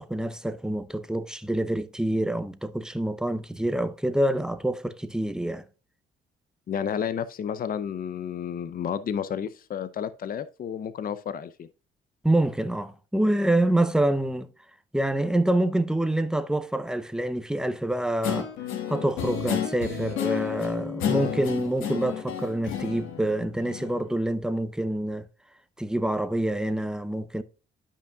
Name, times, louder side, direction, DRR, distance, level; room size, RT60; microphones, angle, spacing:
voice 1, 0.0-5.7 12.2-14.5 14.9-18.5 18.9-25.3 25.8-27.4, right 1 dB, 5° right, 0.7 m, -26 dB
voice 2, 6.7-11.7, left 8 dB, 45° left, 0.6 m, -31 dB
Guitar, 18.2-24.0, left 8 dB, 85° left, 1.3 m, -31 dB
11.5 x 5.4 x 2.3 m
cardioid pair, 90°, 20 cm